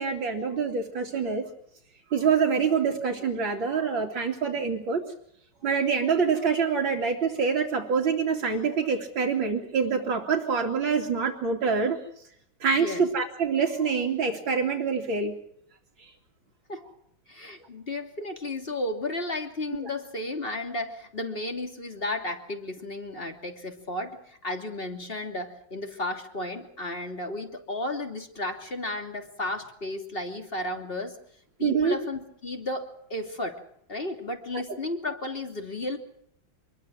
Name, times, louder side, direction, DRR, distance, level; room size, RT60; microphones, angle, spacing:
voice 1, 0.0-1.5 2.1-5.0 5.6-12.0 12.6-15.4 16.0-16.1 31.6-32.0, right 5 dB, 70° right, -1 dB, 3.4 m, -26 dB
voice 2, 12.7-13.0 16.7-16.8 17.3-31.2 31.6-33.6 33.9-36.0, left 2 dB, 25° left, 4 dB, 3.0 m, -33 dB
26.5 x 22.0 x 6.3 m, 0.68 s
omnidirectional pair, 2.2 m